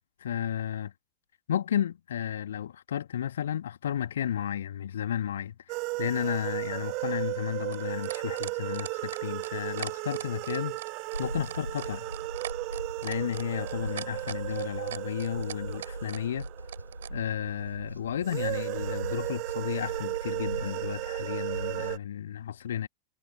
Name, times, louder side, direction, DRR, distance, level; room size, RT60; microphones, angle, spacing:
voice 1, 0.2-0.9 1.5-10.8 11.2-12.1 13.0-16.5 17.1-22.9, left 10 dB, 65° left, 2.3 m, -33 dB
sound 1, 5.7-17.5 18.2-22.0, right 28 dB, 45° right, 0.9 m, -35 dB
sound 2, 6.6-17.1 18.3-18.4, right 10 dB, 60° right, 4.2 m, -41 dB
sound 3, 11.1-22.0, right 1 dB, 85° right, 4.4 m, -40 dB
figure-of-eight pair, 90°, 0 cm